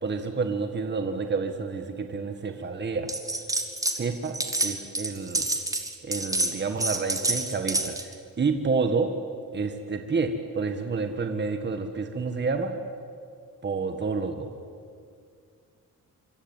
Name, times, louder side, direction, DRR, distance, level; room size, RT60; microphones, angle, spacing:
voice 1, 0.0-3.1 4.0-5.5 6.0-9.1 9.5-12.7 13.6-14.5, right 4 dB, 30° right, 6 dB, 1.8 m, -29 dB
sound 1, 3.1-4.0 4.2-8.1, right 2 dB, 10° right, 2.1 m, -28 dB
26.0 x 24.5 x 9.1 m, 2.3 s
cardioid pair, 145°, 33 cm